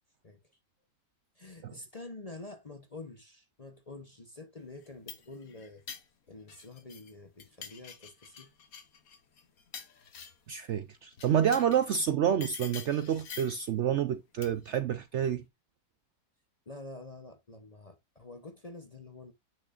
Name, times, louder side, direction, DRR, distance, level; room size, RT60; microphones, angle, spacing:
voice 1, 1.4-5.8 6.3-8.5 16.7-19.3, left 2 dB, 30° left, 0.8 m, -47 dB
sound 1, 4.8-7.1 7.4-10.5 11.1-11.9 12.4-13.7 14.4-14.8, left 7 dB, 65° left, 1.5 m, -47 dB
voice 2, 10.5-15.4, right 9 dB, 65° right, 0.7 m, -28 dB
8.5 x 6.4 x 2.4 m
omnidirectional pair, 1.6 m